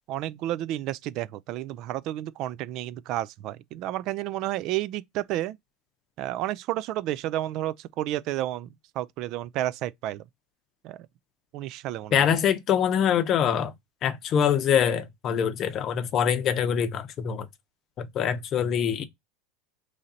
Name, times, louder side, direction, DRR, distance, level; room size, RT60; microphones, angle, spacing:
voice 1, 0.1-5.6 6.2-10.2 10.8-11.0 11.5-12.3, right 14 dB, 50° right, 0.3 m, -31 dB
voice 2, 12.1-13.7 14.0-17.5 18.0-19.0, left 8 dB, 35° left, 0.7 m, -24 dB
3.1 x 2.7 x 3.8 m
supercardioid pair, 135°, 0 cm